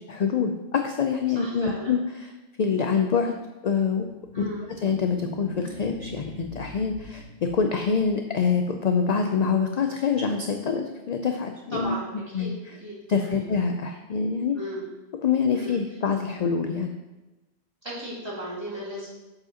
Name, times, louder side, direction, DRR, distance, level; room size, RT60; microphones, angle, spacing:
voice 1, 0.1-2.3 2.6-3.3 3.6-4.1 4.4-4.5 4.8-12.0 12.3-12.5 13.1-14.6 15.2-16.9, left 6 dB, 55° left, 5 dB, 0.5 m, -25 dB
voice 2, 1.3-1.9 4.3-4.7 11.7-13.4 14.5-14.8 15.5-15.7 17.8-19.1, equal, 20° right, -9 dB, 2.9 m, -36 dB
sound 1, 4.0-8.5, left 1 dB, 75° left, 3.1 m, -43 dB
7.7 x 7.3 x 2.8 m, 1.1 s
omnidirectional pair, 1.2 m